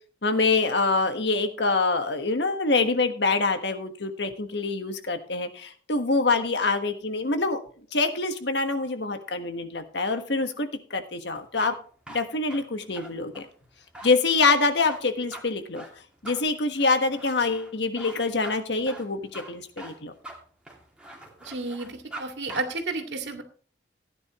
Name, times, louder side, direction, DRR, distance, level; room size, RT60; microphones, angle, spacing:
voice 1, 0.2-7.6 7.9-11.7 12.1-13.5 14.0-15.8 16.2-20.1, left 3 dB, 70° left, 7 dB, 1.4 m, -25 dB
sound 1, 11.3-22.2 22.5-22.6, right 1 dB, 5° right, 2.4 m, -43 dB
voice 2, 21.4-23.4, right 3 dB, 75° right, 5 dB, 2.2 m, -32 dB
16.0 x 9.9 x 3.0 m, 0.42 s
head